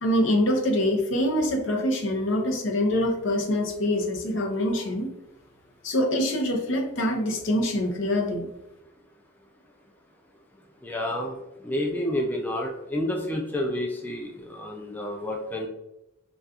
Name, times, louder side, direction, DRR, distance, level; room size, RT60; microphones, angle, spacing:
voice 1, 0.0-5.1 5.8-8.5, left 1 dB, 65° left, 1 dB, 0.6 m, -25 dB
voice 2, 10.8-11.3 11.6-15.7, left 1 dB, 10° left, 0 dB, 0.3 m, -29 dB
4.1 x 2.3 x 2.4 m, 0.90 s
head